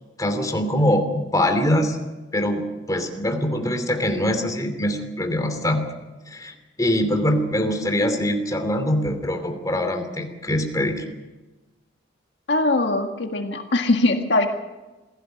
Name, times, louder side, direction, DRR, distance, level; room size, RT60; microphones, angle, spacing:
voice 1, 0.2-2.0 2.3-2.6 2.9-5.8 6.3-11.0, left 1 dB, 20° left, 6 dB, 2.8 m, -23 dB
voice 2, 12.5-14.5, left 2 dB, 70° left, 4 dB, 1.8 m, -21 dB
27.0 x 17.0 x 6.6 m, 1.2 s
head